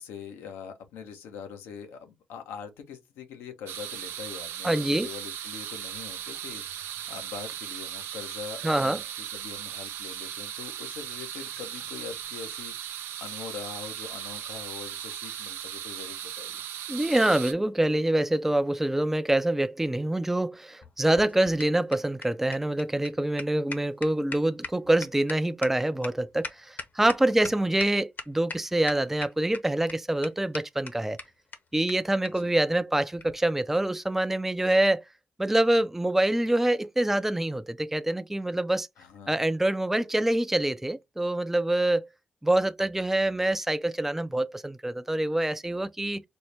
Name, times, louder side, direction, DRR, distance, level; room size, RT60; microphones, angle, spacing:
voice 1, 0.0-16.6 27.5-27.7 32.3-32.6 39.0-39.4, left 7 dB, 90° left, 0.8 m, -43 dB
sound 1, 3.7-17.5, right 10 dB, 85° right, 0.4 m, -38 dB
voice 2, 4.6-5.1 8.6-9.0 16.9-31.2 31.7-35.0 35.4-38.9 39.3-42.1 42.4-46.2, right 1 dB, 10° right, 0.4 m, -25 dB
sound 2, 20.8-27.5 27.8-27.9 28.2-28.6 28.9-29.6 29.9-30.0 30.2-30.3 30.5-30.6 30.9-31.0 31.2-31.3 31.5-31.6 31.9-32.0 32.2-32.3 33.2-33.3, left 4 dB, 55° left, 0.9 m, -38 dB
4.3 x 2.1 x 3.2 m
supercardioid pair, 50°, 4 cm